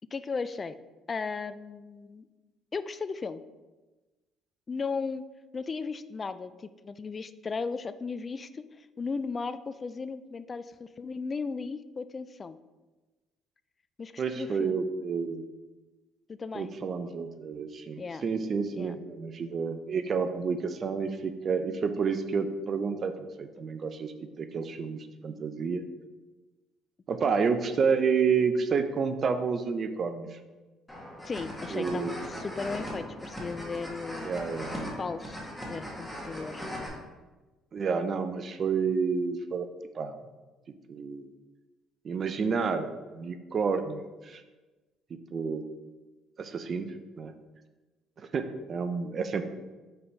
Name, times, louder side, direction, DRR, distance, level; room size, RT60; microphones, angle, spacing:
voice 1, 0.1-0.7 1.1-2.3 2.7-3.4 4.7-5.2 5.5-12.6 14.0-14.8 16.3-16.7 18.0-18.2 18.7-19.0 31.3-34.4 35.0-36.7, left 4 dB, 35° left, 13 dB, 0.3 m, -36 dB
voice 2, 14.2-15.5 16.5-25.8 27.1-30.4 31.7-32.2 34.2-34.9 37.7-39.7 39.9-40.2 40.9-41.3 42.0-44.4 45.1-45.7 46.4-46.9 47.2-47.3 48.2-49.4, right 5 dB, 45° right, 9 dB, 0.6 m, -30 dB
sound 1, 30.9-36.9, equal, 5° left, 1.8 m, -39 dB
5.5 x 4.0 x 4.4 m, 1.2 s
supercardioid pair, 75°, 0 cm